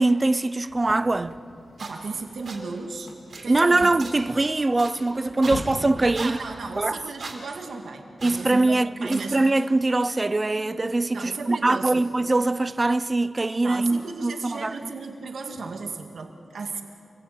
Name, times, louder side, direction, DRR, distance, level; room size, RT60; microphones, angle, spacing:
voice 1, 0.0-1.4 3.5-6.4 6.8-7.0 8.2-14.9, right 2 dB, 25° right, 0.6 m, -22 dB
sound 1, 0.7-6.6, left 2 dB, 90° left, 3.0 m, -42 dB
sound 2, 1.8-1.9 2.4-2.6 3.3-3.4 4.0-4.1 4.8-4.9 5.4-5.6 6.1-6.3 7.2-7.4 8.2-8.4 9.1-9.3, right 4 dB, 55° right, 3.8 m, -37 dB
voice 2, 1.8-3.1 3.4-4.0 6.2-9.4 11.1-12.1 13.6-16.8, right 4 dB, 70° right, 1.9 m, -35 dB
27.5 x 21.5 x 8.8 m
wide cardioid pair, 150°, 0 cm